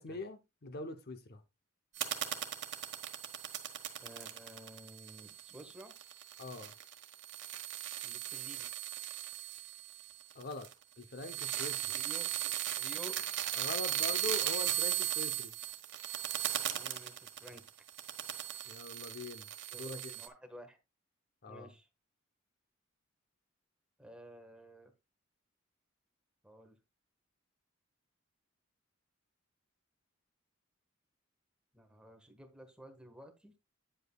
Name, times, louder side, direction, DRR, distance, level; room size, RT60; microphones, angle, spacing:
voice 1, 0.0-1.4 6.4-6.7 10.3-10.7 11.0-11.9 13.5-15.6 18.7-20.1 21.4-21.7, left 2 dB, 50° left, 0.7 m, -43 dB
sound 1, 1.9-10.8 11.2-20.3, right 12 dB, 60° right, 1.4 m, -38 dB
voice 2, 4.0-6.0 8.0-8.7 11.9-13.1 13.9-14.4 16.6-17.7 19.7-20.8 21.5-21.9 24.0-24.9 26.4-26.8 31.7-33.5, right 1 dB, 5° right, 1.4 m, -53 dB
9.8 x 8.0 x 2.3 m
head